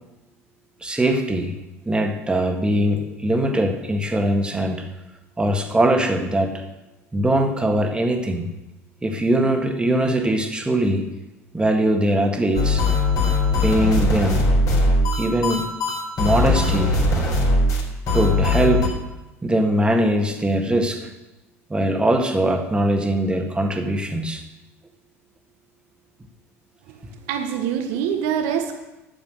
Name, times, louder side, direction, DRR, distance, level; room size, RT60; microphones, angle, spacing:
voice 1, 0.8-1.5 1.9-4.9 5.4-6.6 7.1-8.5 9.0-11.1 11.5-12.9 13.6-14.5 15.2-15.7 16.2-17.0 18.1-18.9 19.4-21.1 21.7-24.4, right 1 dB, 15° right, 4 dB, 1.9 m, -21 dB
sound 1, 12.6-18.9, left 2 dB, 45° left, 4.0 m, -20 dB
voice 2, 26.9-28.7, right 8 dB, 60° right, 6 dB, 1.3 m, -25 dB
12.5 x 7.3 x 6.5 m, 1.0 s
figure-of-eight pair, 65°, 8 cm